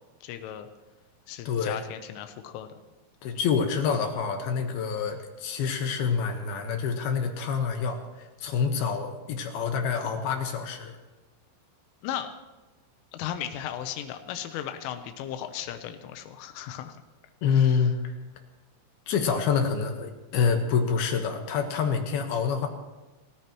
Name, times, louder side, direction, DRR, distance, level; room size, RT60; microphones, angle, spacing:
voice 1, 0.2-0.7 1.3-2.8 12.0-12.3 13.1-17.0 17.5-17.9, left 10 dB, 85° left, 7 dB, 3.4 m, -36 dB
voice 2, 1.5-1.8 3.2-10.9 17.4-18.0 19.1-22.7, left 6 dB, 70° left, 4 dB, 2.6 m, -27 dB
30.0 x 14.5 x 3.0 m, 1.1 s
omnidirectional pair, 5.6 m